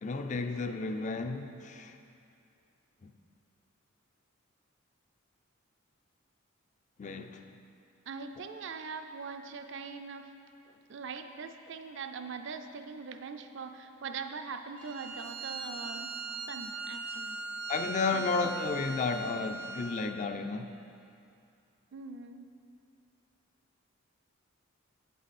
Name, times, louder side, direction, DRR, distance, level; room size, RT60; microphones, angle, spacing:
voice 1, 0.0-2.0 3.0-3.1 7.0-7.6 17.7-20.7, left 4 dB, 35° left, 7 dB, 0.4 m, -33 dB
voice 2, 8.1-10.3 10.9-16.2 16.5-17.4 18.1-18.2 21.9-22.5, right 5 dB, 60° right, 7 dB, 0.5 m, -42 dB
Bowed string instrument, 14.8-20.1, right 2 dB, 85° right, 1.3 m, -39 dB
8.1 x 7.9 x 4.2 m, 2.5 s
head